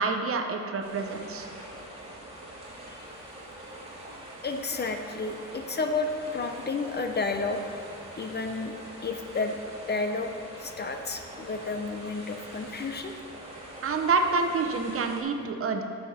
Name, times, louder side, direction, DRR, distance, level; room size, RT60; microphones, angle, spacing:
voice 1, 0.0-1.5 13.8-15.8, right 4 dB, 45° right, 5 dB, 0.9 m, -27 dB
sound 1, 0.8-15.2, right 1 dB, 20° right, 2.5 m, -44 dB
voice 2, 4.4-7.8 8.2-8.7 9.0-9.6 9.9-10.3 10.6-13.1, left 3 dB, 35° left, 6 dB, 0.8 m, -31 dB
12.5 x 6.6 x 4.3 m, 2.5 s
cardioid pair, 90°, 30 cm